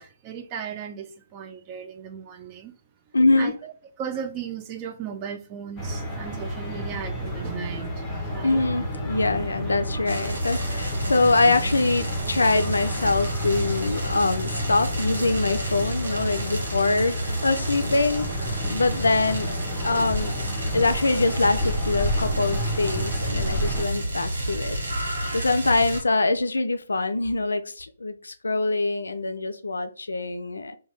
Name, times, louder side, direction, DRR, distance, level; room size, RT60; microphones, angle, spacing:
voice 1, 0.0-2.7 3.4-3.7 4.0-8.6, right 7 dB, 25° right, 0.4 m, -36 dB
voice 2, 3.1-3.5 8.4-19.6 19.8-20.3 20.7-30.8, left 3 dB, 75° left, 0.4 m, -24 dB
sound 1, 5.8-23.9, equal, 10° left, 0.8 m, -30 dB
sound 2, 10.1-26.0, right 1 dB, 70° right, 1.0 m, -32 dB
2.7 x 2.2 x 3.1 m
figure-of-eight pair, 135°, 0 cm